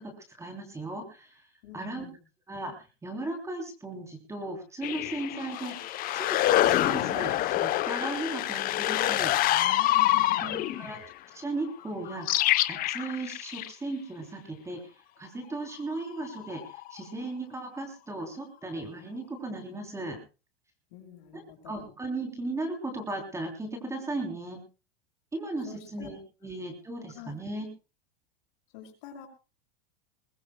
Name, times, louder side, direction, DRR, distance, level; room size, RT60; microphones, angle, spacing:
voice 1, 0.0-1.5 1.7-2.1 2.5-2.7 3.0-9.3 10.4-11.0 11.3-14.9 15.2-20.2 21.3-24.6 25.3-27.7, right 2 dB, 10° right, 4 dB, 3.2 m, -36 dB
voice 2, 1.6-2.2 10.0-11.0 20.9-21.9 25.6-26.1 26.4-26.6 27.1-27.3 28.7-29.3, left 8 dB, 60° left, 4 dB, 6.2 m, -48 dB
sound 1, 4.8-11.1 12.1-13.7 16.1-16.9, left 14 dB, 30° left, 0.8 m, -26 dB
21.5 x 21.0 x 2.2 m, 0.31 s
supercardioid pair, 155°, 30 cm